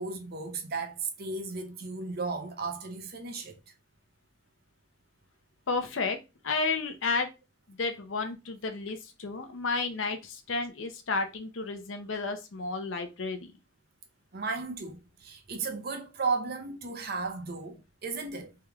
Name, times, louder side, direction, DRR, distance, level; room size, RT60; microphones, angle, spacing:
voice 1, 0.0-3.6 14.3-18.6, right 4 dB, 55° right, 0.7 m, -35 dB
voice 2, 5.7-6.2 6.4-7.3 7.7-13.5, left 4 dB, 90° left, 0.7 m, -32 dB
3.5 x 3.1 x 3.5 m
head